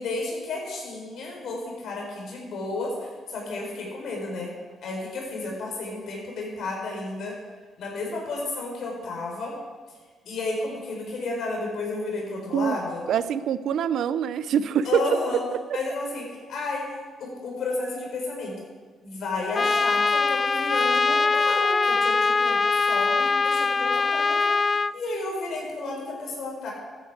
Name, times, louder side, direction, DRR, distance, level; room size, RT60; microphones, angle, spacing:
voice 1, 0.0-4.5 4.8-7.4 7.8-9.6 10.3-13.1 14.8-15.4 15.7-16.8 17.2-18.5 19.0-24.5 24.9-26.7, left 2 dB, 70° left, -1 dB, 4.3 m, -32 dB
voice 2, 13.1-15.0 15.3-15.8, right 8 dB, 75° right, 15 dB, 0.5 m, -25 dB
Trumpet, 19.5-24.9, left 4 dB, 30° left, 0.3 m, -22 dB
14.0 x 9.2 x 4.8 m, 1.4 s
cardioid pair, 90°, 0 cm